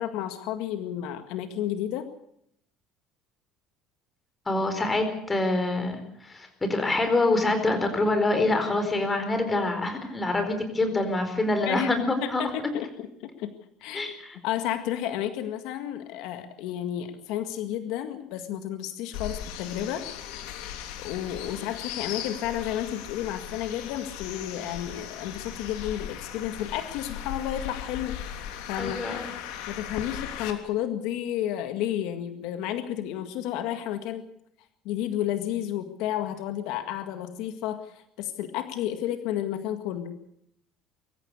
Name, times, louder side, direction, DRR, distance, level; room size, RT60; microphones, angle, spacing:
voice 1, 0.0-2.1 11.7-11.9 12.2-13.1 13.4-13.5 13.8-14.1 14.4-20.1 21.0-29.0 29.7-34.2 34.9-40.2, left 11 dB, 70° left, 8 dB, 1.9 m, -32 dB
voice 2, 4.5-12.4 13.9-14.4 28.8-29.3, left 2 dB, 15° left, 6 dB, 4.4 m, -26 dB
sound 1, 19.1-30.5, left 10 dB, 90° left, 3.3 m, -38 dB
24.0 x 14.5 x 8.3 m, 0.73 s
cardioid pair, 160°, 0 cm